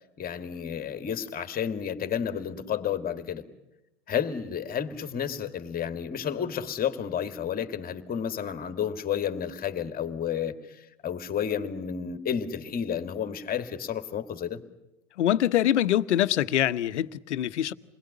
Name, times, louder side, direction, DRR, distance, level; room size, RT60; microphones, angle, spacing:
voice 1, 0.2-3.4 4.1-14.6, left 8 dB, 25° left, 2.4 m, -31 dB
voice 2, 15.2-17.7, left 12 dB, 70° left, 1.2 m, -24 dB
29.0 x 21.0 x 9.9 m
hypercardioid pair, 105°, 36 cm